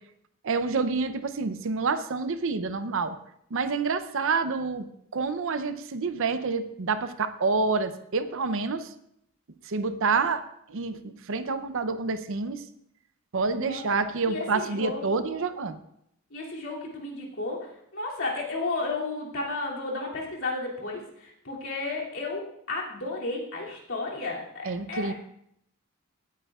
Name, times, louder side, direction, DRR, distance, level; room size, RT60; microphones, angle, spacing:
voice 1, 0.4-3.2 3.5-4.9 5.1-8.9 9.7-10.4 10.7-12.6 13.3-15.7 24.6-25.1, right 4 dB, 65° right, 12 dB, 0.6 m, -28 dB
voice 2, 14.3-15.0 16.3-25.1, left 3 dB, 65° left, -3 dB, 2.7 m, -33 dB
17.0 x 8.9 x 2.4 m, 0.73 s
head